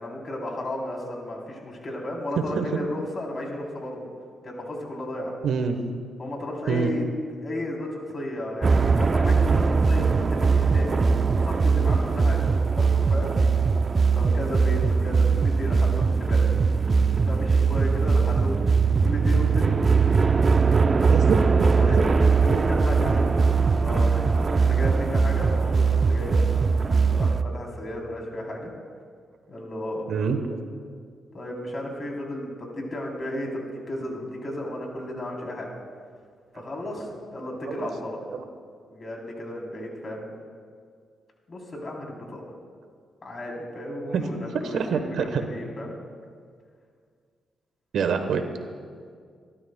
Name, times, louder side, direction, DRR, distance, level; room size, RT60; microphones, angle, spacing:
voice 1, 0.0-4.1 4.4-5.3 6.2-7.0 7.4-11.0 11.4-13.3 14.1-16.4 17.3-18.6 18.9-19.7 20.9-23.3 23.8-26.4 27.1-28.7 29.5-30.1 31.3-35.7 36.5-38.2 38.9-40.3 41.5-42.5 43.2-45.9, left 1 dB, 40° left, -1 dB, 3.3 m, -34 dB
voice 2, 5.4-5.8 6.7-6.9 21.1-21.4 21.9-22.0 23.4-23.5 30.1-30.4 37.7-37.9 38.3-38.4 44.1-44.2 44.6-45.4 47.9-48.4, right 6 dB, 75° right, 7 dB, 1.0 m, -25 dB
sound 1, 8.6-27.4, right 5 dB, 40° right, 0.4 m, -21 dB
26.5 x 12.5 x 2.2 m, 2.1 s
cardioid pair, 80°, 0 cm